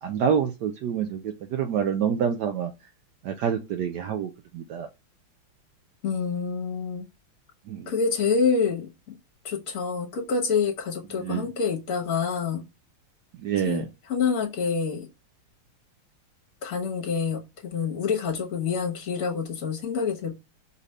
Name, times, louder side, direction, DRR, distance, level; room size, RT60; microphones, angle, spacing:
voice 1, 0.0-2.7 3.2-4.9 7.7-7.9 11.2-11.5 13.4-13.9, right 8 dB, 75° right, 0.9 m, -27 dB
voice 2, 6.0-7.1 7.9-8.9 9.4-12.6 13.6-15.1 16.6-20.3, left 5 dB, 45° left, 1.5 m, -27 dB
5.3 x 2.6 x 3.2 m
omnidirectional pair, 2.3 m